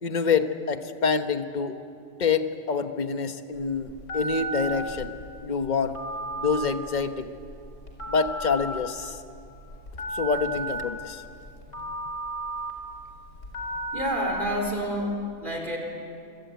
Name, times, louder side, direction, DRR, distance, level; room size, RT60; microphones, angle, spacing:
voice 1, 0.0-1.8 2.2-5.2 5.4-6.0 6.4-7.3 8.1-9.2 10.1-11.2, left 5 dB, 35° left, 9 dB, 1.2 m, -26 dB
Telephone, 3.5-15.0, right 2 dB, 60° left, 4.6 m, -35 dB
voice 2, 13.9-15.8, equal, 35° right, 1 dB, 4.5 m, -29 dB
25.5 x 24.5 x 9.4 m, 2.6 s
omnidirectional pair, 1.5 m